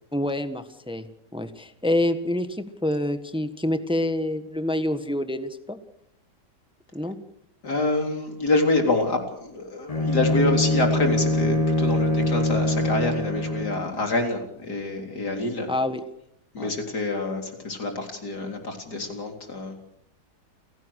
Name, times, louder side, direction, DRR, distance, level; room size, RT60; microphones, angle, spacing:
voice 1, 0.1-1.1 1.3-5.8 6.9-7.2 15.7-16.0 16.6-16.7, left 1 dB, 5° right, 10 dB, 1.3 m, -27 dB
voice 2, 7.6-15.7 16.5-19.8, left 2 dB, 65° left, 4 dB, 4.3 m, -26 dB
Bowed string instrument, 9.9-13.9, left 1 dB, 20° left, 1.3 m, -23 dB
29.0 x 17.0 x 6.5 m, 0.74 s
omnidirectional pair, 1.9 m